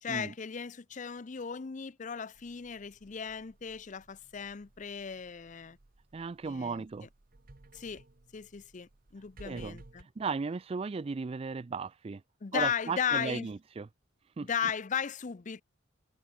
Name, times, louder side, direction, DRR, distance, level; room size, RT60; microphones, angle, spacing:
voice 1, 0.0-5.8 6.4-6.8 7.7-8.0 8.3-10.1 12.4-13.5 14.4-15.6, left 7 dB, 40° left, 0.5 m, -36 dB
sound 1, 2.3-10.0, right 2 dB, 50° right, 1.0 m, -58 dB
voice 2, 6.1-7.1 9.4-12.2 12.5-13.9 14.4-14.5, right 4 dB, 30° right, 0.4 m, -36 dB
head